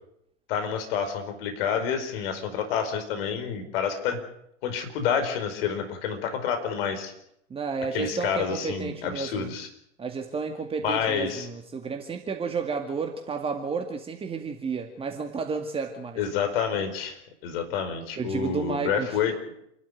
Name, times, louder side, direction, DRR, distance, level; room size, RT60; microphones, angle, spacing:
voice 1, 0.5-4.2 4.6-7.1 7.9-9.7 10.8-11.5 16.2-19.3, left 7 dB, 50° left, 7 dB, 4.9 m, -28 dB
voice 2, 7.5-9.5 10.0-16.2 18.2-19.2, right 5 dB, 15° right, 4 dB, 2.1 m, -32 dB
28.0 x 12.5 x 9.5 m, 0.76 s
figure-of-eight pair, 100°, 36 cm